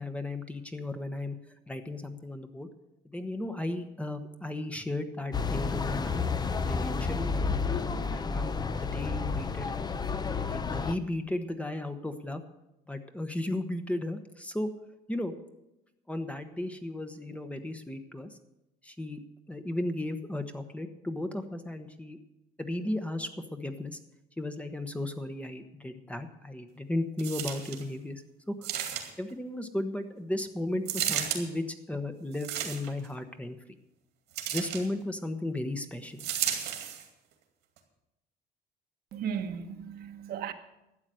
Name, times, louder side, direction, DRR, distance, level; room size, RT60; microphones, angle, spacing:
voice 1, 0.0-1.4 1.7-2.7 3.0-6.2 6.6-7.3 7.7-9.9 10.4-12.4 12.9-14.7 15.1-15.3 16.1-18.3 18.8-19.2 19.5-22.2 22.6-24.0 24.4-28.2 28.5-28.7 29.2-33.6 34.5-36.3, left 1 dB, 10° left, 1.0 m, -35 dB
sound 1, 5.3-10.9, left 5 dB, 25° left, 0.7 m, -31 dB
sound 2, 27.2-27.8 28.6-29.3 30.8-31.4 32.3-33.1 34.3-34.9 36.2-37.0 37.8-37.9, right 10 dB, 85° right, 2.4 m, -33 dB
voice 2, 39.1-40.5, right 7 dB, 65° right, 1.2 m, -35 dB
12.0 x 8.1 x 7.7 m
cardioid pair, 110°, 17 cm